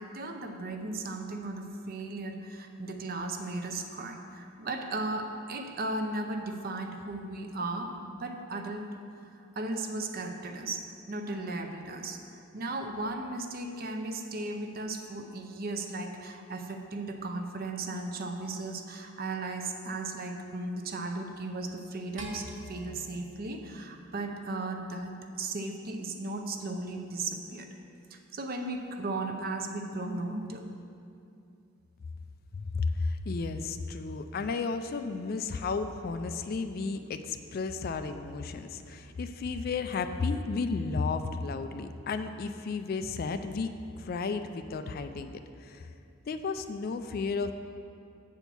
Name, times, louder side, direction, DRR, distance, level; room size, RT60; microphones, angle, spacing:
voice 1, 0.0-8.9 9.6-27.7 28.1-30.7, right 2 dB, 45° right, 5 dB, 0.6 m, -36 dB
sound 1, 22.2-24.6, equal, 60° right, 1.0 m, -46 dB
voice 2, 32.5-45.9 46.3-47.5, left 4 dB, 45° left, 9 dB, 0.3 m, -33 dB
8.1 x 4.4 x 6.9 m, 2.6 s
head